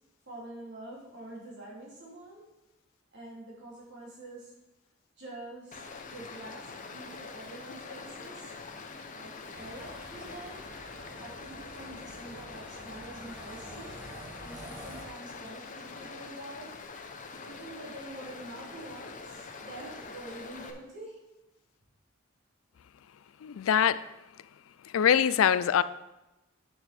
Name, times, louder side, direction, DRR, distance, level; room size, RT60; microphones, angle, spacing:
voice 1, 0.3-2.4 3.1-4.5 5.2-8.5 9.2-10.6 11.1-13.9 14.4-16.8 17.4-21.2, right 1 dB, 60° right, 3.0 m, -46 dB
Stream, 5.7-20.7, left 4 dB, 40° left, 0.8 m, -44 dB
sound 1, 9.5-15.0, equal, 10° right, 1.5 m, -48 dB
voice 2, 23.4-24.1 24.8-25.8, left 8 dB, 80° left, 0.4 m, -24 dB
8.2 x 6.7 x 4.3 m
head